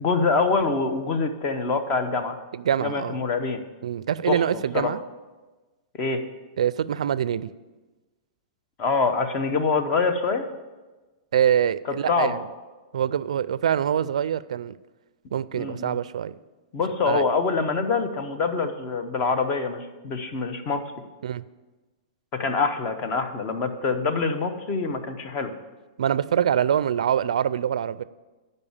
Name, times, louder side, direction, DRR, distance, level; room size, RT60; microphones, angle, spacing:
voice 1, 0.0-2.4 2.8-3.6 4.2-4.4 4.7-4.9 6.0-6.2 8.8-10.4 12.1-12.4 15.5-16.0 16.7-20.8 22.3-25.5, left 4 dB, 30° left, 8 dB, 0.9 m, -25 dB
voice 2, 2.5-3.2 3.8-5.0 6.6-7.5 11.3-12.4 12.9-14.7 15.3-16.3 17.1-17.2 21.2-21.4 26.0-28.0, right 9 dB, 85° right, 17 dB, 0.3 m, -24 dB
11.0 x 5.4 x 7.2 m, 1.2 s
hypercardioid pair, 150°, 3 cm